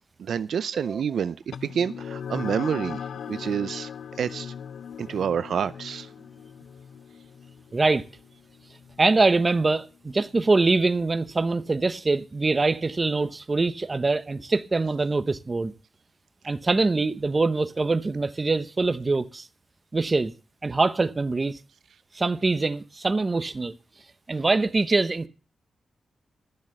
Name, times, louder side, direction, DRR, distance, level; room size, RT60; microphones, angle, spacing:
voice 1, 0.2-3.0 3.3-3.9 4.2-4.5 5.0-6.1, right 7 dB, 70° right, 0.5 m, -28 dB
sound 1, 1.5-10.4, left 7 dB, 80° left, 0.5 m, -39 dB
voice 2, 7.7-8.0 9.0-15.7 16.4-19.5 19.9-20.3 20.6-21.6 22.1-23.7 24.3-25.3, right 3 dB, 25° right, 0.9 m, -24 dB
12.5 x 7.3 x 6.5 m
wide cardioid pair, 135°, 0 cm